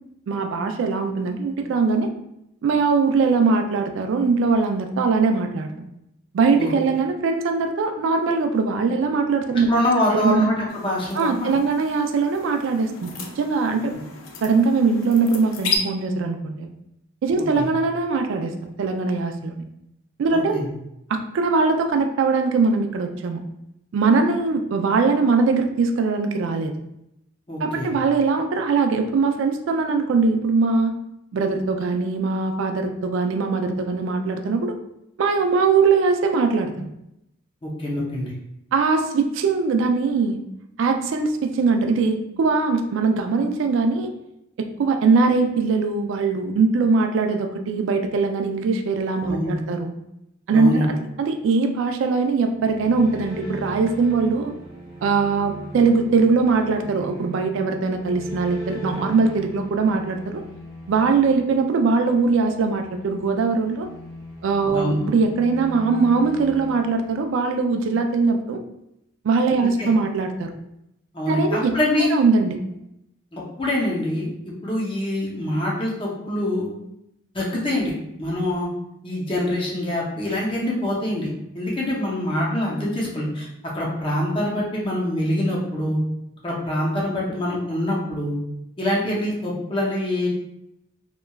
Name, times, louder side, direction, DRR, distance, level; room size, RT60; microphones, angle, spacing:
voice 1, 0.3-2.1 2.6-5.9 6.3-9.7 10.1-10.5 11.2-13.9 14.4-16.7 17.2-18.5 18.8-19.6 20.2-20.6 21.1-23.4 23.9-26.7 27.6-30.9 31.3-34.7 35.2-36.9 38.7-40.4 40.8-44.1 44.6-49.9 50.5-54.5 55.0-60.4 60.9-63.9 64.4-68.6 69.2-70.5 71.3-71.7 72.1-72.6, right 4 dB, 65° right, 5 dB, 0.3 m, -21 dB
voice 2, 9.7-11.5 17.5-17.7 20.3-20.7 27.5-27.9 37.6-38.3 49.3-49.6 50.5-50.9 64.7-65.0 69.6-69.9 71.1-72.1 73.3-76.7 77.3-78.7 79.0-81.3 81.5-83.5 83.7-86.0 86.4-88.4 88.8-90.3, left 1 dB, 25° left, -4 dB, 0.6 m, -25 dB
sound 1, 10.7-15.8, left 5 dB, 70° left, 0.4 m, -34 dB
sound 2, 52.4-67.6, equal, 15° right, 0.8 m, -39 dB
2.8 x 2.2 x 2.2 m, 0.82 s
head